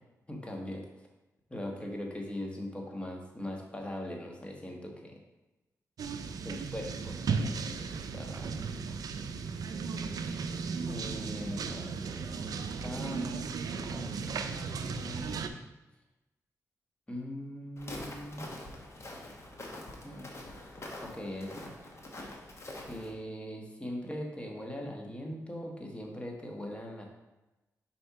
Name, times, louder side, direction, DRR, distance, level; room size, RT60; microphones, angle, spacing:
voice 1, 0.3-0.8 1.5-5.2 6.4-7.9 8.1-8.7 10.8-12.4 12.8-13.4 13.8-15.6 17.1-18.5 20.0-20.3 21.0-21.7 22.8-27.1, left 1 dB, 15° left, 0 dB, 1.3 m, -41 dB
sound 1, 6.0-15.5, right 5 dB, 75° right, 0.4 m, -35 dB
Walk footsteps, 17.8-23.1, left 1 dB, 45° left, 1.2 m, -45 dB
5.3 x 4.3 x 4.7 m, 1.0 s
cardioid pair, 60°, 6 cm